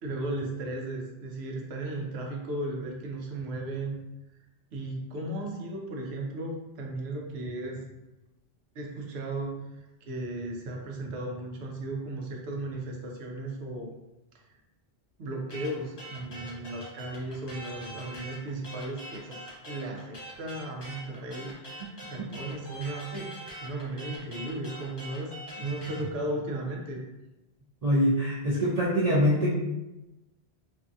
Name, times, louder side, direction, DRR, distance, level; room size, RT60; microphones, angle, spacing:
voice 1, 0.0-4.0 4.7-7.8 8.7-13.9 14.3-14.4 15.2-19.4 19.6-27.0, right 2 dB, 80° right, 0 dB, 0.8 m, -35 dB
sound 1, 15.5-26.0, right 1 dB, 30° left, 0.6 m, -43 dB
voice 2, 27.8-29.5, equal, 50° right, -8 dB, 0.5 m, -24 dB
2.6 x 2.3 x 2.5 m, 0.99 s
omnidirectional pair, 1.1 m